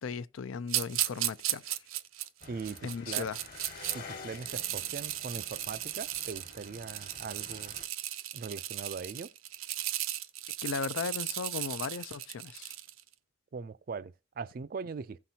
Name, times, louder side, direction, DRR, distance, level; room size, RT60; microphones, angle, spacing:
voice 1, 0.0-1.8 2.8-3.4 10.6-12.7, left 5 dB, 80° left, 0.4 m, -37 dB
sound 1, 0.7-4.0 4.3-13.0, right 13 dB, 90° right, 0.6 m, -36 dB
sound 2, 2.4-7.9, left 4 dB, 45° left, 1.3 m, -49 dB
voice 2, 2.5-3.3 3.9-7.8 8.3-9.3 13.5-15.2, right 5 dB, 45° right, 0.3 m, -40 dB
15.5 x 5.8 x 2.8 m
head